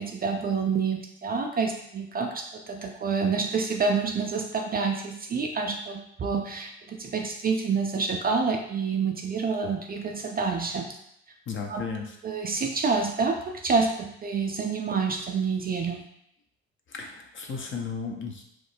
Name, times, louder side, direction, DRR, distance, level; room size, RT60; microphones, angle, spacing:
voice 1, 0.0-10.9 11.7-11.8 12.2-16.0, right 5 dB, 30° right, 3 dB, 0.4 m, -28 dB
voice 2, 11.5-12.2 16.9-18.4, left 5 dB, 40° left, 1 dB, 0.7 m, -34 dB
3.1 x 2.0 x 3.2 m, 0.75 s
hypercardioid pair, 50°, 32 cm